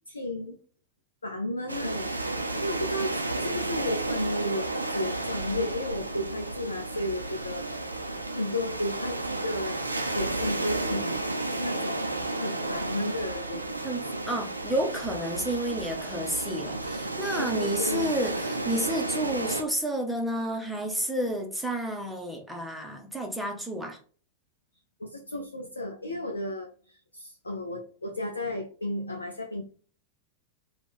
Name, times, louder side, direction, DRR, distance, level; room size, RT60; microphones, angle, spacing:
voice 1, 0.1-0.6 1.2-7.6 8.1-11.2 11.5-12.0 12.3-13.6 17.4-18.1 25.0-29.6, left 1 dB, 80° left, 0.5 m, -33 dB
sound 1, 1.7-19.6, right 2 dB, 85° right, 0.5 m, -32 dB
voice 2, 13.8-24.0, right 1 dB, ahead, 0.8 m, -30 dB
3.7 x 2.3 x 3.5 m
figure-of-eight pair, 90°, 0 cm